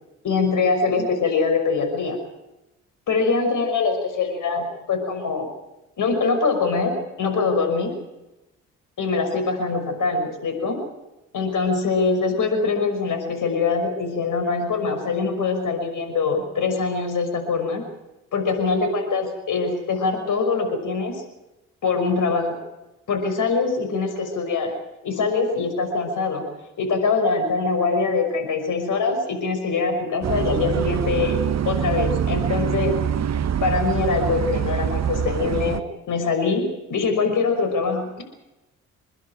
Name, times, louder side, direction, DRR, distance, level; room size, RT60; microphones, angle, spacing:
voice 1, 0.2-2.2 3.1-5.5 6.0-7.9 9.0-10.8 11.3-17.8 18.3-21.2 21.8-22.6 23.1-24.7 25.0-26.4 26.8-31.4 31.7-33.0 33.6-35.8 36.1-36.6 36.9-38.1, left 4 dB, 60° left, 6 dB, 5.9 m, -23 dB
sound 1, 30.2-35.8, right 9 dB, 50° right, 1.1 m, -24 dB
29.5 x 11.0 x 9.1 m, 0.98 s
supercardioid pair, 60°, 34 cm